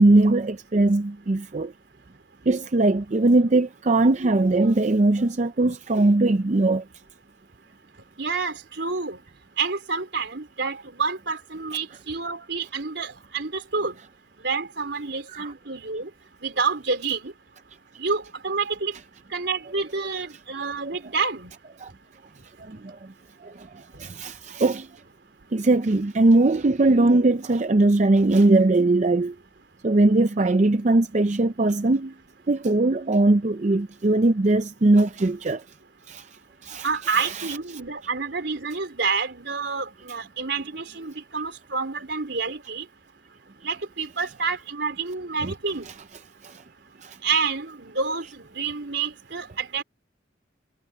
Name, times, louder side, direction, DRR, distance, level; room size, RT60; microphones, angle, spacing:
voice 1, 0.0-1.7 2.5-6.8 15.3-15.5 20.8-20.9 21.8-21.9 22.6-23.0 23.4-24.9 25.5-29.3 29.8-32.1 32.5-35.6 36.1-36.3 36.6-37.6 45.4-45.5 45.9-46.0 46.4-46.6 47.0-47.2, right 2 dB, 40° right, 0.5 m, -20 dB
voice 2, 8.2-9.2 9.6-13.9 14.4-16.1 16.4-17.3 18.0-18.9 19.3-21.5 36.8-42.8 43.6-45.9 47.2-49.8, right 4 dB, 70° right, 3.7 m, -28 dB
head